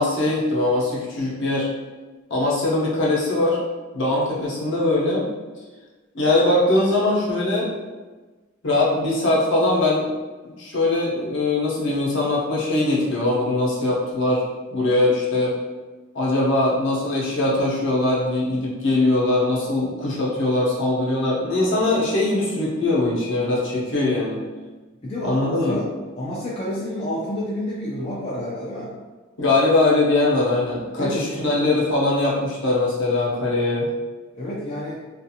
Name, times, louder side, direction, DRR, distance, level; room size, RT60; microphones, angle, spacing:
voice 1, 0.0-1.7 2.3-3.6 3.9-5.2 6.1-7.7 8.6-10.1 10.4-14.4 14.7-15.5 16.1-24.4 25.2-25.8 29.4-33.9, left 2 dB, 60° left, -5 dB, 0.8 m, -21 dB
voice 2, 25.0-25.9 26.2-28.9 31.0-31.2 34.3-35.0, left 1 dB, 25° left, -7 dB, 0.4 m, -29 dB
2.5 x 2.4 x 2.7 m, 1.3 s
head